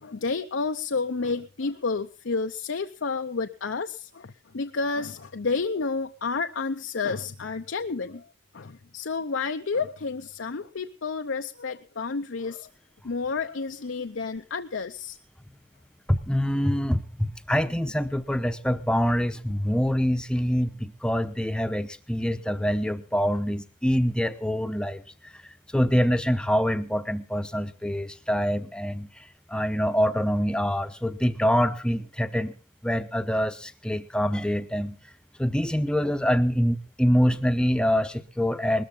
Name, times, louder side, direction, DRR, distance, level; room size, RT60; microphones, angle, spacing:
voice 1, 0.0-8.2 8.5-12.7 13.0-15.2, left 4 dB, 70° left, 7 dB, 0.6 m, -30 dB
voice 2, 16.1-32.6 32.8-35.0 35.4-38.8, equal, 5° left, 10 dB, 0.8 m, -25 dB
20.5 x 13.5 x 3.8 m, 0.34 s
head